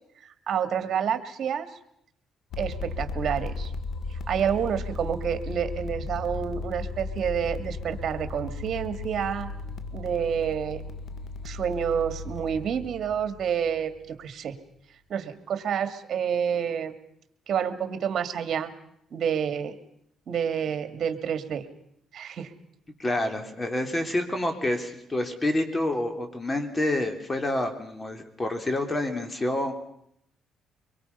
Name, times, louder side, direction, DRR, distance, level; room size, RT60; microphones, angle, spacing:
voice 1, 0.2-1.7 2.6-3.7 4.3-9.5 9.9-10.8 11.4-14.6 15.1-16.9 17.5-18.7 19.1-19.7 20.3-21.6 22.1-22.5, right 8 dB, 65° right, 9 dB, 2.0 m, -28 dB
sound 1, 2.5-14.2, left 3 dB, 65° left, 1.6 m, -36 dB
voice 2, 23.0-29.7, left 1 dB, 25° left, 6 dB, 3.5 m, -28 dB
24.5 x 23.0 x 5.6 m, 0.75 s
cardioid pair, 90°, 0 cm